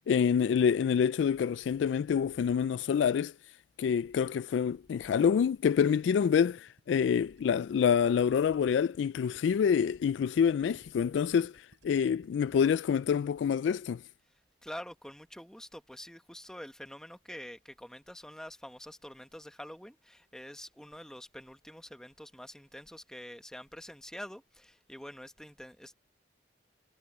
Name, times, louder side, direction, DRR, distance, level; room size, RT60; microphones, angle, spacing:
voice 1, 0.1-3.3 3.8-11.5 11.8-14.0, left 7 dB, 80° left, 0.3 m, -27 dB
Gurgling, 5.9-13.0, right 1 dB, 90° right, 6.1 m, -61 dB
voice 2, 14.6-25.9, equal, 5° left, 1.2 m, -46 dB
head